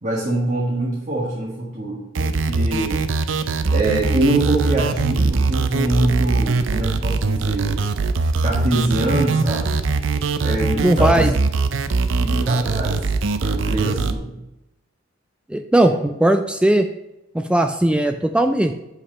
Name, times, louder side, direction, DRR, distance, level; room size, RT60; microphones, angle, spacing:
voice 1, 0.0-3.0 3.7-7.8 8.4-9.8 10.4-11.3 12.2-13.0 13.4-14.3 15.8-15.9, right 2 dB, 40° right, -5 dB, 1.3 m, -24 dB
sound 1, 2.1-14.1, right 3 dB, 75° right, 0.5 m, -21 dB
voice 2, 10.8-11.3 15.5-16.9 17.3-18.7, right 1 dB, 5° right, 6 dB, 0.3 m, -18 dB
7.1 x 5.7 x 4.2 m, 0.92 s
head